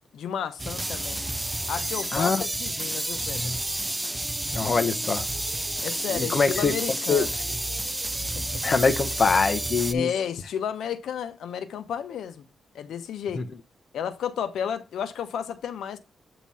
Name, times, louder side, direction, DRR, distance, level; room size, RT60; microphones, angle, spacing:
voice 1, 0.1-1.2 1.7-3.6 5.8-7.3 8.3-8.5 9.9-12.4 12.7-13.4 13.9-16.0, left 8 dB, 85° left, 0.9 m, -32 dB
sound 1, 0.6-9.9, right 1 dB, 10° right, 0.4 m, -30 dB
voice 2, 2.1-2.4 3.4-3.5 4.5-5.2 6.1-6.7 7.1-7.2 8.6-10.1, left 4 dB, 40° left, 0.8 m, -23 dB
8.5 x 3.0 x 5.5 m
cardioid pair, 110°, 0 cm